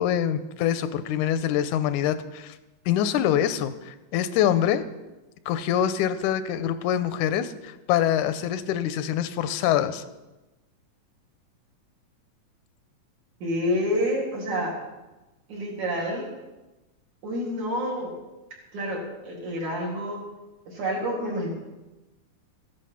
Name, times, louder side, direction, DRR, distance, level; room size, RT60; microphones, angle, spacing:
voice 1, 0.0-2.5 2.9-4.9 5.5-10.0, left 10 dB, 85° left, 12 dB, 2.1 m, -25 dB
voice 2, 13.4-14.7 15.5-16.3 17.2-18.1 18.7-20.2 20.7-21.5, equal, 70° right, -3 dB, 4.8 m, -28 dB
15.0 x 11.0 x 5.7 m, 1.1 s
omnidirectional pair, 3.5 m